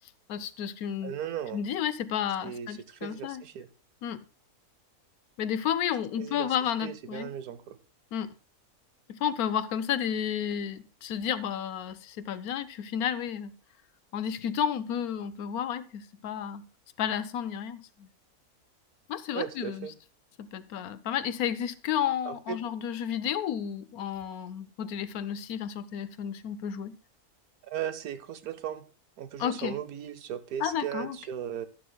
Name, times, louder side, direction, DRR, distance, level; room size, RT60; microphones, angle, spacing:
voice 1, 0.3-1.1 1.5-3.4 4.0-4.2 5.4-7.3 8.1-8.3 9.1-13.5 14.1-16.6 17.0-18.1 19.1-19.9 20.4-26.9 29.4-29.8 30.6-31.2, left 9 dB, 75° left, 1.1 m, -32 dB
voice 2, 1.0-1.6 2.4-3.7 6.2-6.5 6.8-7.8 19.3-19.9 22.3-22.6 27.6-28.9 29.2-31.7, right 10 dB, 75° right, 1.2 m, -37 dB
12.0 x 11.5 x 2.2 m
omnidirectional pair, 1.6 m